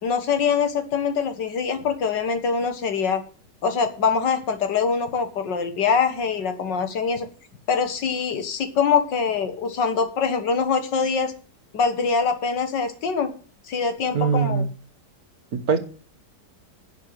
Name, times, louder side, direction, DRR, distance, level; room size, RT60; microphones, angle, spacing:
voice 1, 0.0-3.2 3.6-7.3 7.7-11.3 11.7-13.3 13.7-14.7, left 6 dB, 90° left, 8 dB, 2.1 m, -23 dB
voice 2, 14.1-14.7 15.5-15.8, right 6 dB, 60° right, 9 dB, 1.6 m, -21 dB
11.0 x 6.6 x 8.0 m, 0.40 s
omnidirectional pair, 1.8 m